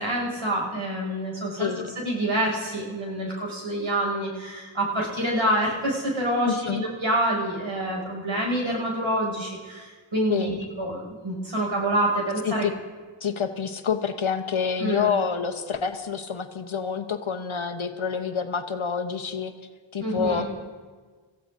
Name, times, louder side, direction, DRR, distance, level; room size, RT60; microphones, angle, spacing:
voice 1, 0.0-1.7 2.0-12.7 14.8-15.1 20.0-20.4, right 1 dB, 85° right, -3 dB, 6.0 m, -27 dB
voice 2, 1.6-1.9 6.5-6.8 10.3-10.5 12.4-12.7 13.2-19.5 19.9-20.4, left 6 dB, 85° left, 6 dB, 1.0 m, -27 dB
28.5 x 15.0 x 2.6 m, 1.4 s
wide cardioid pair, 55°, 47 cm